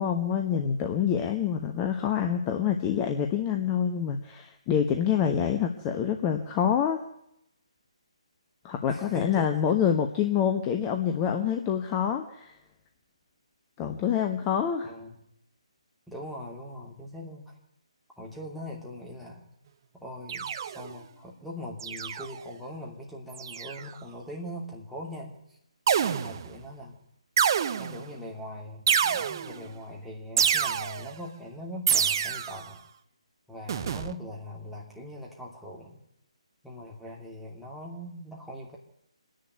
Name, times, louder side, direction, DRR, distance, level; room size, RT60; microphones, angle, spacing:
voice 1, 0.0-7.0 8.6-12.5 13.8-14.9, left 8 dB, 20° left, 5 dB, 1.2 m, -26 dB
voice 2, 8.8-9.8 14.8-15.2 16.1-17.6 18.2-19.5 19.9-25.4 26.0-27.0 27.8-32.8 33.5-36.0 36.6-38.8, left 1 dB, ahead, -3 dB, 2.8 m, -41 dB
sound 1, 20.3-21.0 21.8-22.4 23.3-23.9 25.9-26.6 27.4-28.1 28.9-29.7 30.4-31.2 31.9-32.7 33.7-34.1, right 8 dB, 35° right, 0.8 m, -27 dB
26.0 x 10.5 x 9.4 m, 0.80 s
figure-of-eight pair, 145°, 3 cm